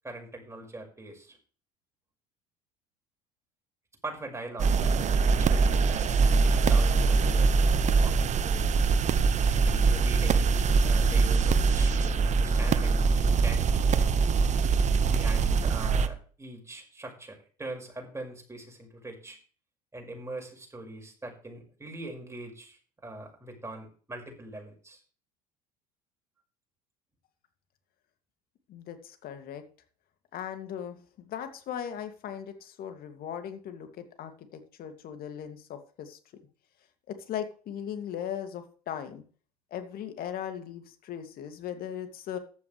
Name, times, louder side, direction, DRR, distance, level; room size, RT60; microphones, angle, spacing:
voice 1, 0.0-1.4 4.0-5.0 5.2-6.1 6.4-8.7 9.4-13.7 15.1-19.4 19.9-25.0, right 2 dB, 15° right, 1 dB, 5.7 m, -42 dB
sound 1, 4.6-16.1, right 4 dB, 35° right, 1.2 m, -23 dB
voice 2, 28.7-29.6 30.3-36.2 37.1-39.2 39.7-42.4, left 9 dB, 50° left, 8 dB, 2.5 m, -38 dB
14.5 x 11.5 x 3.4 m, 0.40 s
figure-of-eight pair, 65°, 20 cm